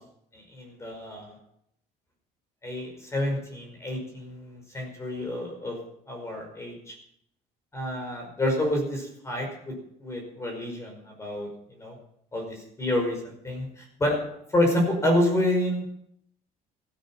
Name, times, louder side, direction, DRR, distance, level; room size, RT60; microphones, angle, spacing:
voice 1, 0.3-1.3 2.6-5.8 6.1-6.9 7.7-9.7 10.0-12.0 12.3-14.2 14.5-15.8, left 1 dB, 15° left, 2 dB, 5.3 m, -28 dB
16.0 x 13.0 x 5.9 m, 0.72 s
cardioid pair, 150°, 16 cm